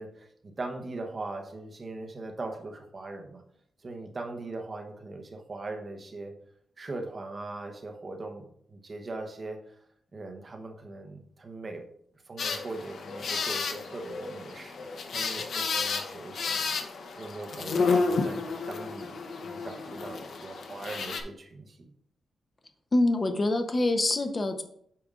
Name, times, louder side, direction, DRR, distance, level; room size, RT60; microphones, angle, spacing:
voice 1, 0.0-3.4 3.8-6.3 6.8-9.8 10.1-11.8 12.3-16.5 17.2-21.9, right 2 dB, 30° right, 3 dB, 0.9 m, -40 dB
sound 1, 12.4-21.2, left 4 dB, 60° left, 0.7 m, -31 dB
voice 2, 22.9-24.6, left 2 dB, 25° left, 7 dB, 0.7 m, -25 dB
8.5 x 5.2 x 2.4 m, 0.67 s
wide cardioid pair, 140°, 0 cm